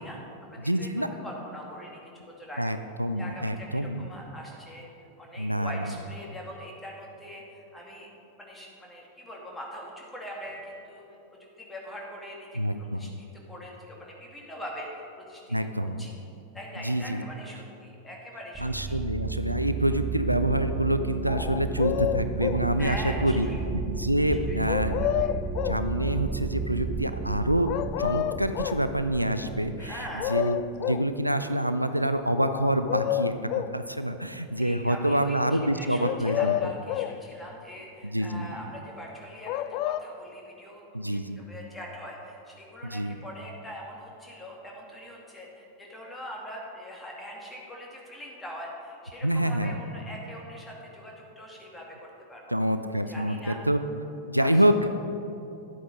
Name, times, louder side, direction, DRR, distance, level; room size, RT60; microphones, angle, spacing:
voice 1, 0.0-2.7 3.2-4.9 5.2-8.1 8.4-11.0 11.6-14.9 15.2-15.6 15.8-16.1 16.5-18.9 22.8-23.6 24.5-24.6 25.0-25.3 29.8-30.3 34.6-52.4 53.1-53.6 54.4-54.6, equal, 10° left, -2 dB, 2.3 m, -42 dB
voice 2, 0.6-1.1 2.6-4.1 5.4-5.8 12.5-13.1 15.5-16.1 16.8-17.2 18.6-23.0 23.2-25.0 25.6-27.7 28.0-30.0 30.3-30.6 30.9-36.6 38.0-38.5 40.9-41.4 42.8-43.2 49.2-49.7 52.5-53.8 54.3-54.9, right 1 dB, 90° right, 9 dB, 0.4 m, -27 dB
sound 1, 18.5-30.8, right 5 dB, 20° right, 0.6 m, -33 dB
sound 2, 21.3-22.7 24.7-25.9 27.7-28.9 29.9-30.0 30.2-31.1 32.4-33.8 36.0-37.2 39.5-40.0, left 13 dB, 45° left, 0.3 m, -29 dB
11.5 x 8.4 x 5.2 m, 2.8 s
figure-of-eight pair, 90°, 0 cm